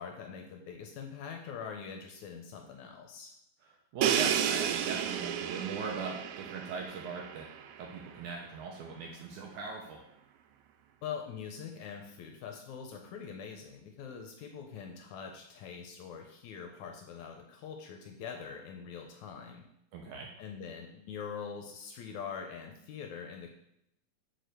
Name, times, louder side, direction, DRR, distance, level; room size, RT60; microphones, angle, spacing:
voice 1, 0.0-3.3 11.0-19.6 20.4-23.5, left 6 dB, 75° left, 3 dB, 1.8 m, -43 dB
voice 2, 3.9-7.5 7.8-10.0 19.9-20.3, right 4 dB, 70° right, 0 dB, 2.1 m, -39 dB
Crash cymbal, 4.0-7.8, right 9 dB, 90° right, 2.5 m, -32 dB
6.1 x 5.1 x 6.7 m, 0.78 s
omnidirectional pair, 4.2 m